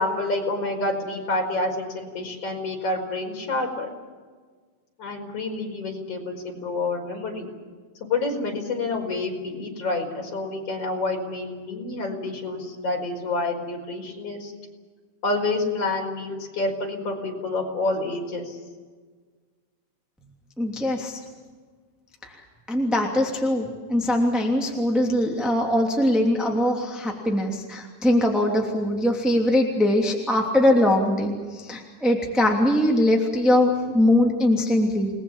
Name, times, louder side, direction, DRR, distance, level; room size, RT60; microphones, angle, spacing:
voice 1, 0.0-3.9 5.0-7.5 8.1-14.5 15.2-18.6, left 2 dB, 50° left, 1 dB, 5.9 m, -28 dB
voice 2, 20.6-21.2 22.7-35.2, left 1 dB, ahead, 0 dB, 2.5 m, -22 dB
29.5 x 20.5 x 7.5 m, 1.5 s
omnidirectional pair, 3.6 m